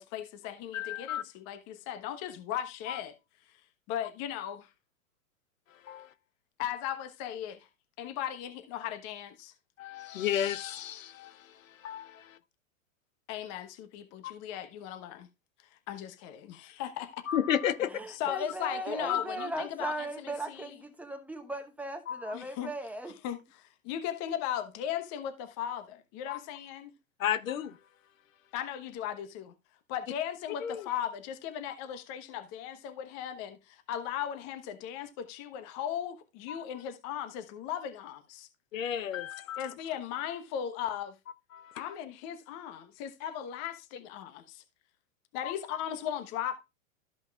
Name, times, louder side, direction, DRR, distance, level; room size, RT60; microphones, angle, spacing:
voice 1, 0.0-3.1 3.9-4.7 6.6-7.7 8.0-9.5 13.3-15.3 15.9-16.4 16.8-17.1 18.1-20.1 22.3-22.7 23.2-26.9 28.5-29.5 29.9-38.5 39.6-41.1 41.7-44.6 45.3-46.6, left 10 dB, 40° left, 1.2 m, -37 dB
voice 2, 0.7-1.2 2.9-3.0 5.8-6.1 9.8-12.2 14.2-14.3 17.3-18.0 19.1-19.2 22.1-22.3 26.3-26.4 27.2-27.8 30.6-30.9 36.5-36.6 38.7-39.7 41.5-41.8 45.4-45.5, left 10 dB, 75° left, 0.9 m, -33 dB
voice 3, 17.9-23.2, right 1 dB, 5° right, 1.1 m, -38 dB
14.0 x 5.3 x 2.4 m
hypercardioid pair, 115°, 41 cm